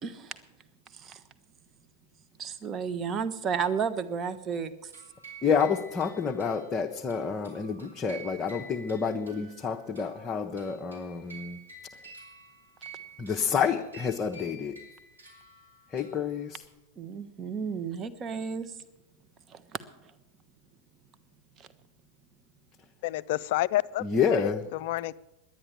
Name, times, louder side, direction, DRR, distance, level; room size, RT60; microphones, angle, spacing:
voice 1, 0.0-0.4 0.9-1.2 2.4-4.9 17.0-18.7 19.5-19.8 21.6-21.7, right 6 dB, 25° right, 10 dB, 0.9 m, -33 dB
sound 1, 4.9-16.7, right 2 dB, 80° right, 3.8 m, -50 dB
voice 2, 5.4-11.6 13.2-14.7 15.9-16.6 24.0-24.6, left 6 dB, 20° left, 2 dB, 0.8 m, -29 dB
voice 3, 23.0-25.1, left 16 dB, 50° left, 18 dB, 0.4 m, -29 dB
11.0 x 9.9 x 9.8 m, 0.95 s
figure-of-eight pair, 90°, 0 cm